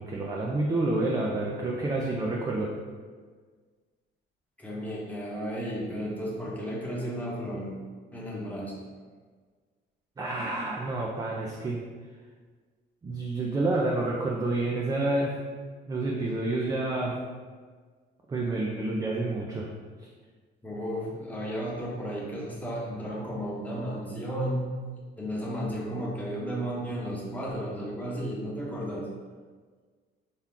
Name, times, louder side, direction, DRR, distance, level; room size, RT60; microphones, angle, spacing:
voice 1, 0.0-2.7 10.2-11.8 13.0-15.3 15.9-17.1 18.3-19.7, right 2 dB, 20° right, -3 dB, 0.4 m, -29 dB
voice 2, 4.6-7.7 8.1-8.8 20.6-24.7 25.2-29.1, equal, 10° left, -5 dB, 1.0 m, -33 dB
5.8 x 2.3 x 3.7 m, 1.5 s
cardioid pair, 135°, 20 cm